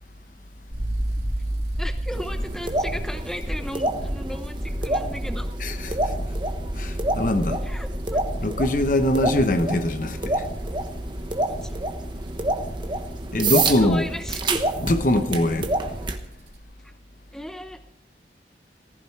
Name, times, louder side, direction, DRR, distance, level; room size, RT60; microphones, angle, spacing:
sound 1, 0.7-16.6, equal, 70° right, 3.5 m, -33 dB
voice 1, 1.8-5.5 7.6-8.2 11.5-11.8 13.8-14.6 17.3-17.8, equal, 5° left, 0.8 m, -35 dB
sound 2, 2.1-16.2, right 2 dB, 25° right, 1.1 m, -28 dB
voice 2, 5.6-6.1 6.8-7.6 8.4-10.5 13.3-14.1 14.8-15.7, left 1 dB, 45° left, 1.0 m, -23 dB
15.5 x 14.5 x 4.6 m
head